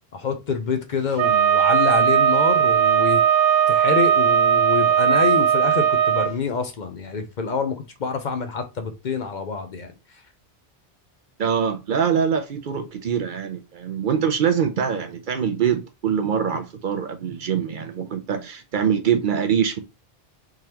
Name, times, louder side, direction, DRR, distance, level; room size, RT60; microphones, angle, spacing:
voice 1, 0.1-3.2 3.7-9.9, left 5 dB, 55° left, 0.7 m, -26 dB
Wind instrument woodwind instrument, 1.2-6.3, right 9 dB, 75° right, 1.0 m, -18 dB
voice 2, 11.4-19.8, right 7 dB, 60° right, 0.7 m, -24 dB
3.7 x 3.2 x 2.8 m
omnidirectional pair, 1.1 m